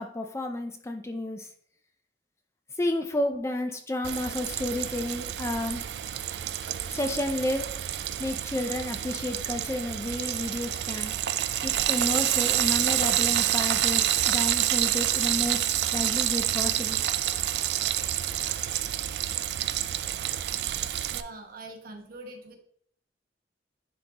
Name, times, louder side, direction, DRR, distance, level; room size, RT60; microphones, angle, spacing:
voice 1, 0.0-1.5 2.8-5.9 6.9-7.7 8.2-11.1 11.6-15.7 15.9-17.0, left 1 dB, 15° left, 5 dB, 0.4 m, -31 dB
Frying (food), 4.0-21.2, right 12 dB, 70° right, 0.3 m, -28 dB
voice 2, 21.1-22.6, right 2 dB, 55° right, 4 dB, 1.0 m, -43 dB
10.0 x 3.8 x 2.8 m, 0.64 s
head